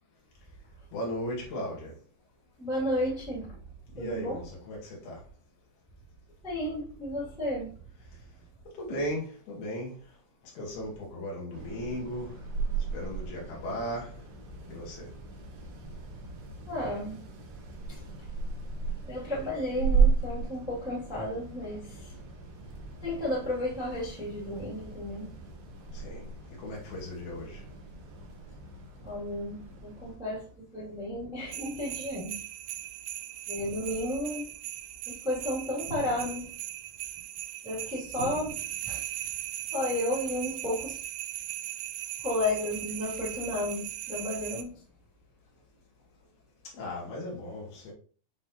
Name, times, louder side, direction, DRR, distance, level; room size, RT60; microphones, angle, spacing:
voice 1, 0.9-1.9 4.0-5.2 8.8-10.0 10.6-12.4 12.9-14.2 14.7-15.1 25.9-26.3 26.6-27.6 46.7-47.9, equal, 85° left, 3.8 m, -36 dB
voice 2, 2.6-3.6 4.0-4.4 6.4-7.7 16.7-17.2 17.9-18.0 19.1-22.1 23.0-25.3 29.0-30.5 30.7-32.4 33.5-34.5 35.0-36.5 37.6-38.5 38.8-39.0 39.7-41.0 42.2-44.7, left 1 dB, ahead, 1.5 m, -33 dB
sound 1, 11.5-30.2, right 5 dB, 65° right, 1.7 m, -34 dB
sound 2, 31.5-44.6, right 13 dB, 80° right, 2.0 m, -39 dB
sound 3, 31.9-32.3 33.5-34.3 35.8-36.8 38.1-39.1, equal, 40° left, 2.2 m, -44 dB
8.8 x 3.7 x 2.9 m
omnidirectional pair, 4.3 m